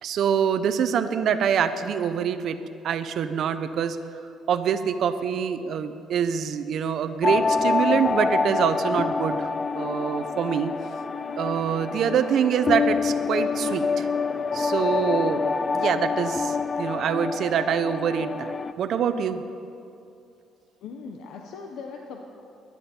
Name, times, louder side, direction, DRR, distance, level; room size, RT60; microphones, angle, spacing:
voice 1, 0.0-2.6 2.8-4.0 4.5-10.7 11.4-14.1 14.5-15.4 15.7-19.4, right 7 dB, 65° right, 10 dB, 0.8 m, -25 dB
sound 1, 7.2-18.7, left 4 dB, 30° left, 0.4 m, -26 dB
voice 2, 20.8-22.2, left 5 dB, 85° left, 3 dB, 0.9 m, -39 dB
21.5 x 11.0 x 4.4 m, 2.6 s
cardioid pair, 110°, 0 cm